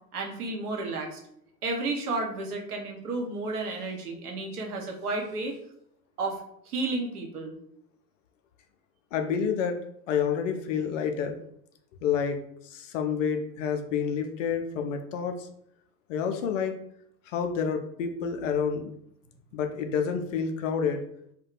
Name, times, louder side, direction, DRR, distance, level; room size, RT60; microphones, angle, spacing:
voice 1, 0.1-1.2 1.6-5.6 6.2-7.5, right 3 dB, 65° right, 1 dB, 0.8 m, -32 dB
voice 2, 9.1-9.8 10.1-11.4 12.0-15.5 16.1-16.8 17.3-18.9 19.5-21.0, left 7 dB, 50° left, 5 dB, 0.5 m, -29 dB
2.3 x 2.2 x 3.8 m, 0.71 s
figure-of-eight pair, 80°, 49 cm